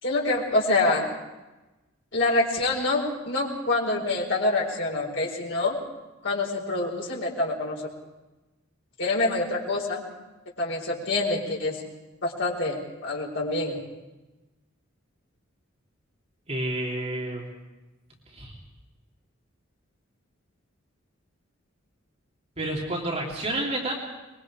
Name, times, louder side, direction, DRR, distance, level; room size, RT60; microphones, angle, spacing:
voice 1, 0.0-1.1 2.1-5.8 6.2-7.9 9.0-10.0 10.6-11.9 12.2-13.7, left 2 dB, 60° left, -2 dB, 4.7 m, -26 dB
voice 2, 16.5-17.5 18.3-18.6 22.6-23.9, right 1 dB, 30° right, -2 dB, 3.0 m, -30 dB
24.0 x 22.0 x 4.9 m, 1.1 s
head